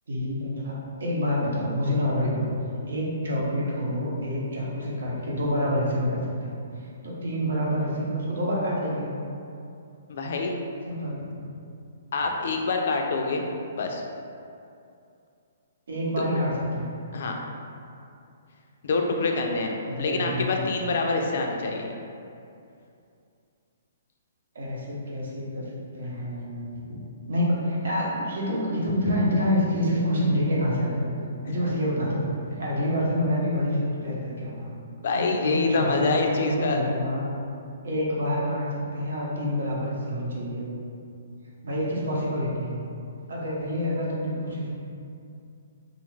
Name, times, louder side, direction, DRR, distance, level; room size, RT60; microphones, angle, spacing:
voice 1, 0.1-2.5 2.9-6.6 7.0-9.1 10.8-11.4 15.9-16.9 19.8-20.6 24.5-25.6 25.9-26.9 27.3-32.2 32.5-34.7 35.1-37.3 37.8-40.7 41.6-42.8 43.3-44.7, equal, 80° right, -5 dB, 0.8 m, -27 dB
voice 2, 10.1-10.5 12.1-13.5 13.8-14.0 16.2-16.3 17.1-17.4 18.8-19.7 20.0-21.9 29.0-29.1 35.0-36.8, left 3 dB, 60° left, 2 dB, 0.3 m, -26 dB
2.5 x 2.4 x 3.1 m, 2.5 s
hypercardioid pair, 160°, 0 cm